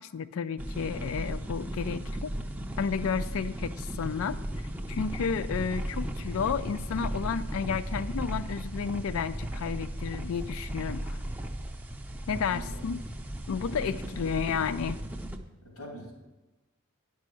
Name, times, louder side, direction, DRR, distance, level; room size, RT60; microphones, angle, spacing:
voice 1, 0.0-2.3 2.8-4.4 4.9-11.2 12.3-13.0 13.5-15.0, left 6 dB, 70° left, 15 dB, 0.4 m, -32 dB
sound 1, 0.6-15.4, right 1 dB, 10° right, 0.5 m, -36 dB
voice 2, 12.4-12.8 13.6-14.2 15.6-16.1, right 1 dB, 85° left, -1 dB, 2.7 m, -44 dB
10.5 x 5.5 x 6.2 m, 1.1 s
head